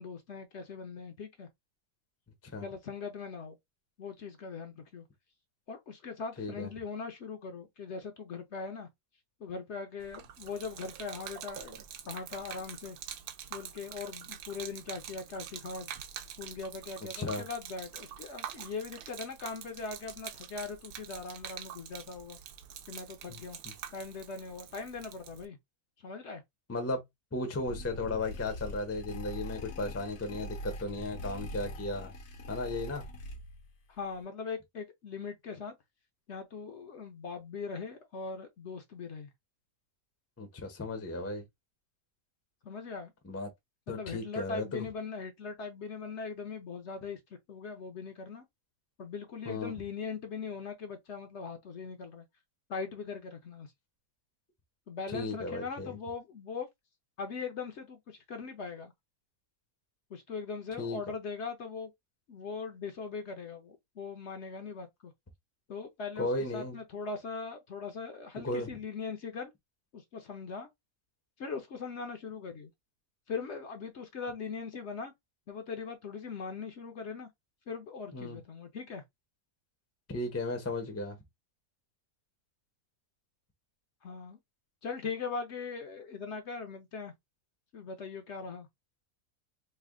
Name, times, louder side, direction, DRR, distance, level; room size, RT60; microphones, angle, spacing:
voice 1, 0.0-1.5 2.6-3.6 4.0-5.0 5.7-8.9 9.4-11.8 12.0-13.0 13.5-15.9 16.4-22.4 22.9-23.6 23.9-25.6 26.0-26.4 33.9-35.7 36.3-39.3 42.6-43.1 43.9-47.2 47.5-48.4 49.0-52.2 52.7-53.7 54.9-56.7 57.2-58.9 60.1-61.9 62.3-65.1 65.7-66.3 66.5-69.5 69.9-70.7 71.4-72.7 73.3-75.1 75.5-77.3 77.7-79.0 84.0-84.4 84.8-87.1 87.7-88.7, left 5 dB, 60° left, 0.9 m, -40 dB
voice 2, 6.4-6.7 17.2-17.4 23.3-23.7 26.7-27.0 27.3-32.1 32.5-33.1 40.4-41.4 43.2-43.5 43.9-44.9 49.4-49.7 55.1-56.0 60.8-61.0 66.2-66.8 68.4-68.7 78.1-78.4 80.1-81.2, left 2 dB, 15° left, 0.5 m, -35 dB
Gurgling / Liquid, 10.0-25.5, right 10 dB, 90° right, 1.1 m, -46 dB
sound 1, 27.7-33.7, left 1 dB, 80° left, 1.4 m, -42 dB
3.3 x 2.1 x 3.5 m
omnidirectional pair, 1.5 m